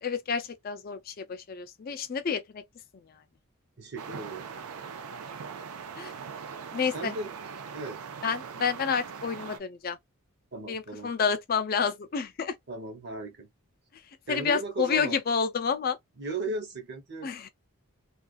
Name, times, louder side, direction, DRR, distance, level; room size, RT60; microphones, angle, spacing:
voice 1, 0.0-2.6 6.0-6.1 6.7-7.1 8.2-10.0 10.7-12.6 14.3-16.0 17.2-17.5, left 6 dB, 40° left, 0.4 m, -29 dB
voice 2, 3.8-4.5 6.9-7.3 7.7-8.0 10.5-11.1 12.7-13.5 14.3-15.2 16.2-17.3, right 3 dB, 50° right, 0.9 m, -36 dB
sound 1, 4.0-9.6, right 6 dB, 85° right, 0.5 m, -41 dB
2.4 x 2.3 x 2.4 m
head